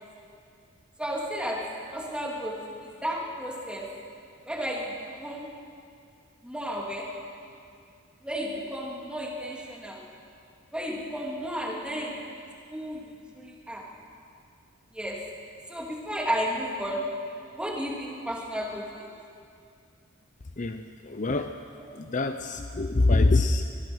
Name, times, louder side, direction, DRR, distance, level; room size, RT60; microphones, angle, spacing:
voice 1, 1.0-3.9 4.5-5.6 6.4-7.2 8.2-10.0 10.7-12.4 12.7-13.9 14.9-15.3 15.7-17.2 17.5-19.1, equal, 5° right, -2 dB, 3.1 m, -33 dB
voice 2, 20.6-21.6 21.9-23.6, left 2 dB, 40° left, 7 dB, 0.7 m, -25 dB
24.0 x 20.0 x 6.4 m, 2.4 s
head